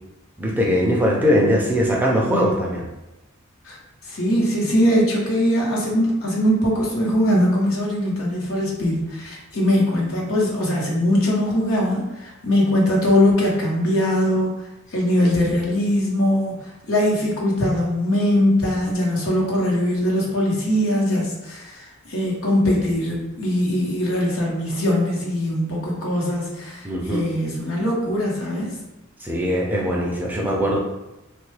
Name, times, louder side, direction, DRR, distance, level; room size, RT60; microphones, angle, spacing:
voice 1, 0.4-2.8 26.8-27.2 29.2-30.8, equal, 10° right, -3 dB, 0.4 m, -20 dB
voice 2, 4.0-14.5 14.9-28.7, left 1 dB, 70° left, -3 dB, 0.9 m, -21 dB
3.1 x 2.2 x 3.2 m, 1.0 s
head